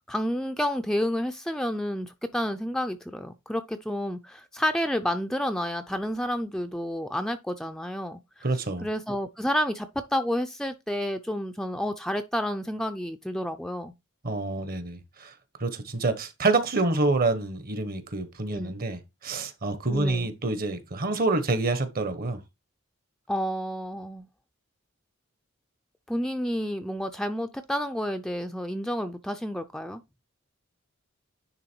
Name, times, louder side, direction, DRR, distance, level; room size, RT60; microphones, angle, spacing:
voice 1, 0.1-8.5 8.8-13.9 18.5-18.8 19.9-20.3 23.3-24.3 26.1-30.0, equal, 5° left, 0.5 m, -30 dB
voice 2, 8.4-8.9 14.2-15.3 15.6-22.4, right 2 dB, 45° right, 1.1 m, -27 dB
10.0 x 3.5 x 4.5 m
head